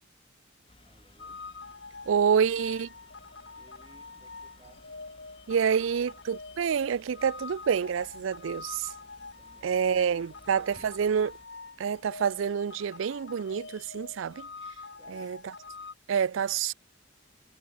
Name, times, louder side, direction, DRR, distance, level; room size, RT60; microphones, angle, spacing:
sound 1, 0.7-11.5, left 2 dB, 30° left, 4.4 m, -58 dB
voice 1, 0.8-1.4 2.3-3.1 3.5-4.8 9.4-11.0 15.0-15.4, right 1 dB, 25° right, 4.5 m, -61 dB
sound 2, 1.2-15.9, left 4 dB, 60° left, 2.4 m, -45 dB
voice 2, 2.1-2.9 5.5-8.9 9.6-11.3 11.8-14.5 15.1-15.5 16.1-16.7, right 7 dB, 85° right, 0.4 m, -27 dB
head